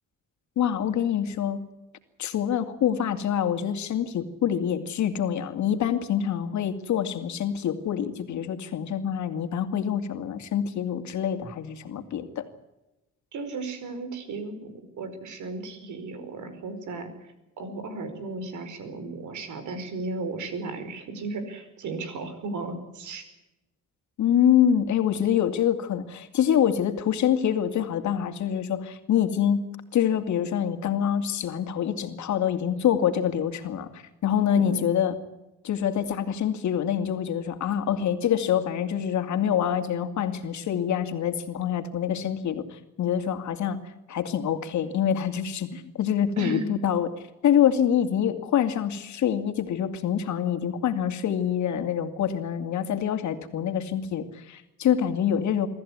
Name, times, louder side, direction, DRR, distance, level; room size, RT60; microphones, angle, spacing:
voice 1, 0.6-1.6 2.2-12.5 24.2-35.2 35.6-47.1 47.4-55.7, left 9 dB, 70° left, 7 dB, 2.5 m, -26 dB
voice 2, 13.3-17.1 17.6-23.2 34.5-34.9 46.4-46.7, right 3 dB, 75° right, 10 dB, 4.9 m, -35 dB
24.0 x 14.0 x 9.8 m, 0.98 s
cardioid pair, 90°, 30 cm